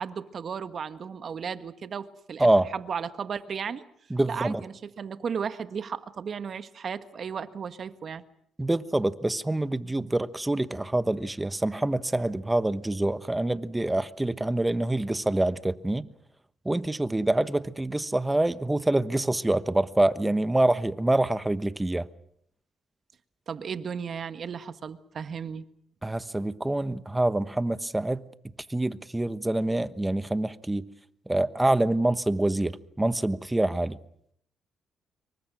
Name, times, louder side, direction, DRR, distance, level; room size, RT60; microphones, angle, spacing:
voice 1, 0.0-2.5 2.7-3.8 4.3-8.2 23.5-25.6, right 6 dB, 50° right, 1.5 m, -35 dB
voice 2, 4.1-4.6 8.6-16.1 16.6-22.1 26.0-28.2 28.7-30.9 31.3-34.0, right 1 dB, 10° right, 1.2 m, -26 dB
27.0 x 24.0 x 6.3 m
cardioid pair, 90°, 0 cm